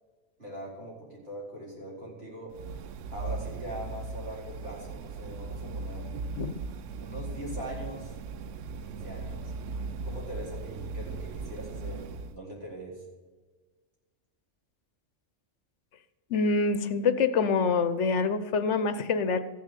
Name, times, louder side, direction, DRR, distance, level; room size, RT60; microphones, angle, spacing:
voice 1, 0.4-2.5 3.1-6.1 7.0-8.1 8.8-9.5 10.0-13.0, right 1 dB, 55° right, -6 dB, 4.8 m, -41 dB
sound 1, 2.5-12.4, right 3 dB, 90° right, 1.0 m, -38 dB
voice 2, 16.3-19.4, left 4 dB, 75° left, 12 dB, 1.2 m, -26 dB
14.5 x 6.8 x 6.8 m, 1.4 s
omnidirectional pair, 1.2 m